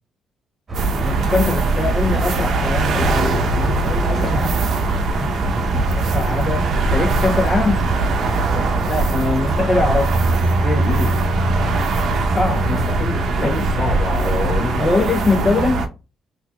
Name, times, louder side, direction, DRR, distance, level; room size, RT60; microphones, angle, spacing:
sound 1, 0.7-9.9, right 2 dB, 35° right, 1.0 m, -28 dB
sound 2, 0.7-15.9, right 2 dB, 70° right, 0.6 m, -20 dB
voice 1, 1.0-4.5 5.1-5.4 6.1-7.9 8.9-10.2 10.6-10.9 12.3-13.5 14.8-15.8, left 3 dB, 25° left, 0.5 m, -22 dB
voice 2, 3.8-4.5 5.5-5.8 8.5-8.8 10.8-11.1 13.4-14.8 15.4-15.5, left 3 dB, 55° left, 1.0 m, -28 dB
3.9 x 2.8 x 2.2 m
cardioid pair, 90°, 0 cm